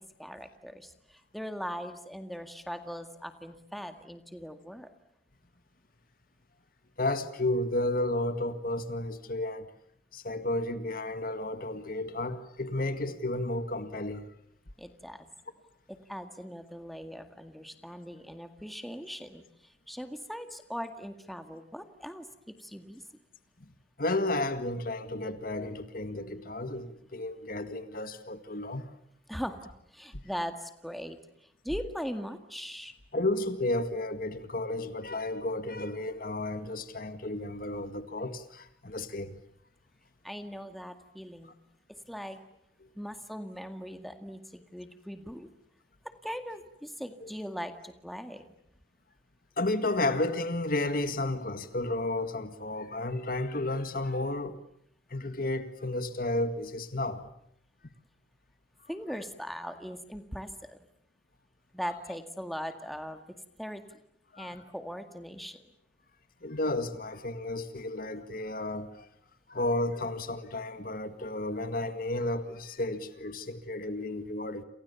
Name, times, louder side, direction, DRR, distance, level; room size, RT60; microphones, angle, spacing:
voice 1, 0.2-4.9 14.8-15.3 15.9-19.4 19.9-22.3 22.6-23.0 29.3-31.2 31.6-32.9 40.2-41.5 42.1-42.4 43.0-45.5 46.2-48.4 58.9-60.8 61.7-63.2 63.6-63.8 64.4-65.6, equal, ahead, 2.0 m, -40 dB
voice 2, 7.0-9.7 10.1-14.3 23.6-23.7 24.0-28.9 30.1-30.2 33.1-39.4 41.4-41.5 42.8-42.9 47.2-47.3 49.6-54.6 55.1-57.3 64.3-64.6 66.4-69.1 69.5-74.6, left 2 dB, 55° left, 1.9 m, -32 dB
29.5 x 28.5 x 7.1 m
head